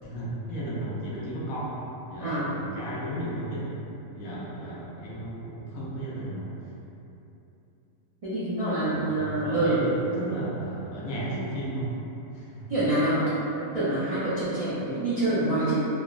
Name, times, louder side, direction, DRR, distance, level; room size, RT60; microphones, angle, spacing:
voice 1, 0.0-1.8 2.1-3.7 4.1-6.5 8.9-11.9 12.3-12.7, right 1 dB, 85° left, -6 dB, 1.1 m, -34 dB
voice 2, 8.2-9.8 12.7-13.2 13.7-15.9, right 2 dB, 50° right, -14 dB, 0.4 m, -26 dB
3.3 x 2.0 x 2.3 m, 2.9 s
omnidirectional pair, 1.4 m